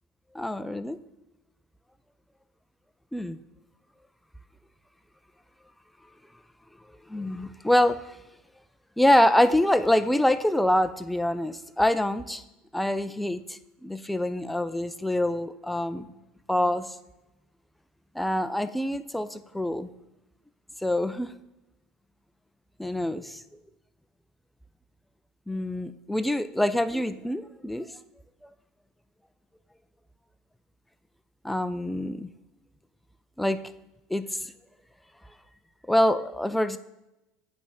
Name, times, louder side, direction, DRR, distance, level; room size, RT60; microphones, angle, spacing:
voice 1, 0.3-1.0 3.1-3.4 7.1-8.0 9.0-12.4 12.7-16.1 16.5-17.0 18.2-19.9 20.8-21.3 22.8-23.4 25.5-27.9 31.4-32.3 33.4-33.6 34.1-34.5 35.9-36.8, left 1 dB, 5° left, 12 dB, 0.4 m, -25 dB
8.6 x 3.4 x 5.5 m, 0.94 s
supercardioid pair, 130°, 2 cm